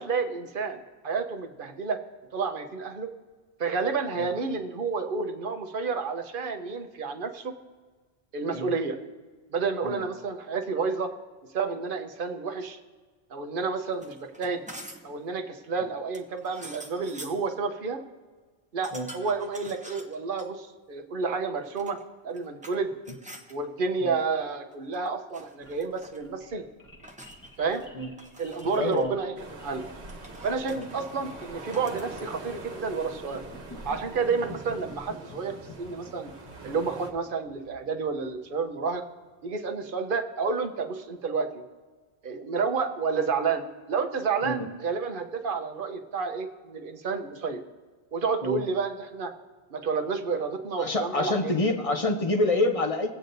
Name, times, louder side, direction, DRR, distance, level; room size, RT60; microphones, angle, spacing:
voice 1, 0.0-2.0 2.3-3.1 3.6-7.5 8.3-9.0 9.5-11.1 11.5-12.8 13.3-14.6 15.0-18.0 18.7-22.0 22.2-22.9 23.5-26.6 27.6-27.9 28.4-29.8 30.4-33.4 33.8-36.3 36.6-39.0 39.4-41.6 42.2-47.6 48.1-49.3 49.7-51.5, right 4 dB, 55° right, 6 dB, 1.0 m, -30 dB
sound 1, 13.9-15.2 16.1-17.5 18.8-20.5 21.6-22.8 23.0-23.5 24.7-25.1 25.3-26.2 27.0-27.9 28.2-29.1 30.1-32.6, right 1 dB, 10° right, 0.7 m, -47 dB
sound 2, 25.6-39.5, left 2 dB, 20° left, 1.1 m, -49 dB
voice 2, 28.7-29.1 30.7-30.9 44.4-44.7 48.4-48.6 50.8-53.1, left 2 dB, 35° left, 4 dB, 0.8 m, -27 dB
sound 3, 29.4-37.1, right 3 dB, 90° right, 1.5 m, -43 dB
24.5 x 8.3 x 2.6 m, 1.4 s
omnidirectional pair, 1.1 m